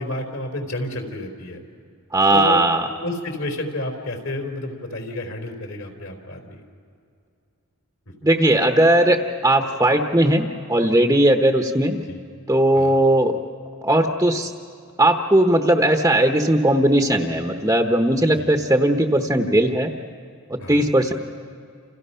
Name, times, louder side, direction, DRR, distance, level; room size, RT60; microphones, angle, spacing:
voice 1, 0.0-1.6 2.3-2.6 3.0-6.6 8.2-8.3 12.1-12.2 12.7-13.0 18.3-18.5 20.6-20.9, left 1 dB, 65° left, 4 dB, 3.9 m, -30 dB
voice 2, 2.1-2.9 8.2-12.0 12.5-13.4 13.8-14.5 15.0-19.9 20.5-21.1, right 1 dB, 15° right, 3 dB, 1.0 m, -18 dB
29.5 x 28.5 x 5.7 m, 2.4 s
head